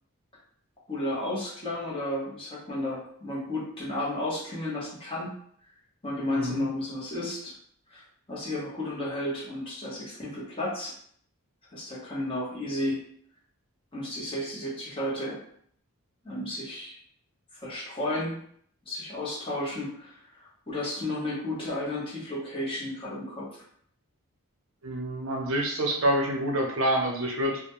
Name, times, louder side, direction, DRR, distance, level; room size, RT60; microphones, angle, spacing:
voice 1, 0.9-5.3 6.0-7.5 7.9-8.0 8.3-10.9 11.7-13.0 13.9-15.4 16.2-17.0 17.5-18.4 18.9-23.6, left 1 dB, 25° left, -6 dB, 0.9 m, -33 dB
voice 2, 6.3-6.7 24.8-27.6, right 1 dB, 65° right, 0 dB, 0.6 m, -27 dB
2.3 x 2.2 x 2.9 m, 0.62 s
head